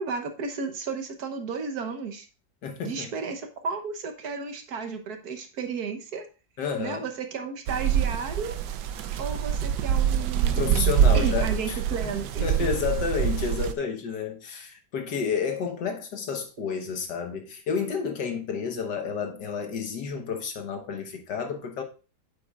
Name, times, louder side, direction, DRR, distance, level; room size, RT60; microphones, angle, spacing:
voice 1, 0.0-2.3 2.8-6.2 6.8-8.6 9.2-12.7, right 5 dB, 65° right, 1.5 m, -33 dB
voice 2, 2.6-3.1 6.6-7.0 10.4-12.1 12.4-21.8, left 6 dB, 75° left, 1.8 m, -30 dB
sound 1, 7.7-13.7, right 9 dB, 85° right, 1.3 m, -25 dB
8.7 x 7.7 x 2.4 m
omnidirectional pair, 1.9 m